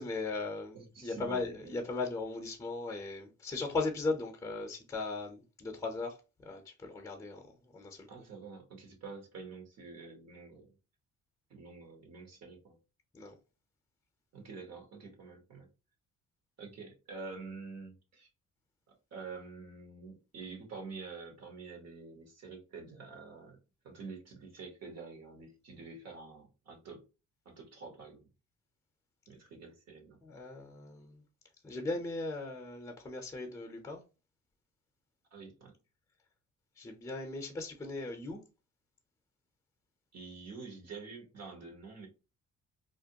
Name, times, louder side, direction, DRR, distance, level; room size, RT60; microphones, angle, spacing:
voice 1, 0.0-8.1 13.1-13.3 30.2-31.2 31.6-34.0 36.8-38.4, left 3 dB, 10° left, 0.7 m, -38 dB
voice 2, 0.7-1.8 8.1-10.7 11.5-12.8 14.3-15.7 16.6-18.3 19.1-23.6 23.8-27.0 27.4-28.3 29.3-30.2 35.3-35.7 40.1-42.1, right 4 dB, 60° right, 1.1 m, -47 dB
2.5 x 2.2 x 2.7 m
cardioid pair, 90°, 30 cm